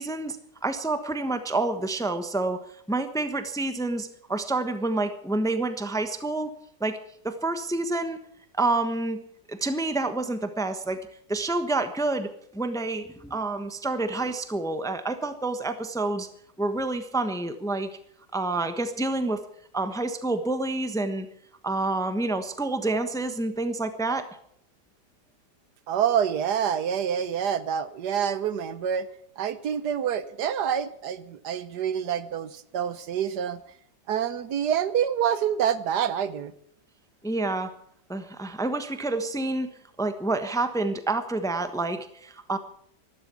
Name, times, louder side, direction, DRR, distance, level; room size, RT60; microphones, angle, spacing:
voice 1, 0.0-2.6 2.9-6.5 6.8-7.0 7.2-8.2 8.6-9.2 9.5-11.0 11.3-16.3 16.6-17.9 18.3-19.4 19.7-21.3 21.6-24.3 37.2-37.7 38.1-39.7 40.0-42.6, right 2 dB, ahead, 9 dB, 0.9 m, -28 dB
voice 2, 25.9-29.1 29.4-33.6 34.1-36.5, right 8 dB, 75° right, 14 dB, 1.4 m, -27 dB
14.0 x 12.5 x 8.4 m, 0.69 s
omnidirectional pair, 1.8 m